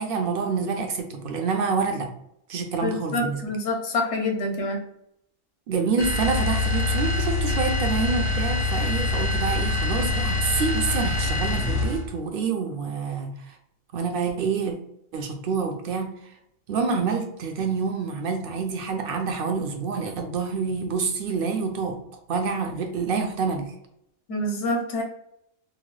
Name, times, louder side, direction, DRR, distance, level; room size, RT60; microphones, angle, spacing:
voice 1, 0.0-2.1 2.5-3.4 5.7-13.5 13.9-14.7 15.1-16.1 16.7-22.0 22.3-23.7, right 5 dB, 65° right, 3 dB, 0.6 m, -27 dB
voice 2, 2.8-4.8 24.3-25.0, left 2 dB, 65° left, 1 dB, 0.9 m, -26 dB
sound 1, 6.0-12.1, left 3 dB, 45° left, 0.4 m, -25 dB
2.9 x 2.1 x 3.0 m, 0.77 s
omnidirectional pair, 1.4 m